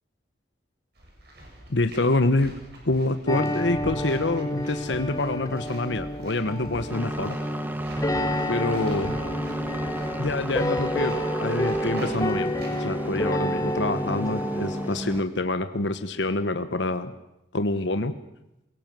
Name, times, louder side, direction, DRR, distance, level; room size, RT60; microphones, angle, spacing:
sound 1, 0.9-13.1, right 1 dB, 55° right, 7.9 m, -44 dB
voice 1, 1.7-2.5 2.8-7.4 8.5-9.2 10.2-17.1 17.5-18.2, left 2 dB, 80° left, 9 dB, 1.2 m, -26 dB
sound 2, 3.3-14.9, equal, 20° left, 1.0 m, -30 dB
sound 3, 6.9-15.2, right 1 dB, 10° right, 1.2 m, -33 dB
23.0 x 23.0 x 7.7 m, 0.88 s
head